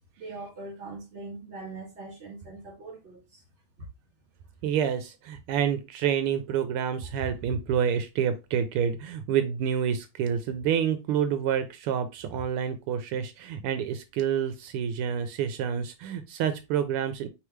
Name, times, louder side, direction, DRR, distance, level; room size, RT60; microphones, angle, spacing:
voice 1, 0.2-3.4, right 3 dB, 35° right, 1.8 m, -41 dB
voice 2, 4.6-17.3, right 8 dB, 80° right, 1.5 m, -28 dB
4.7 x 3.5 x 3.1 m
omnidirectional pair, 2.4 m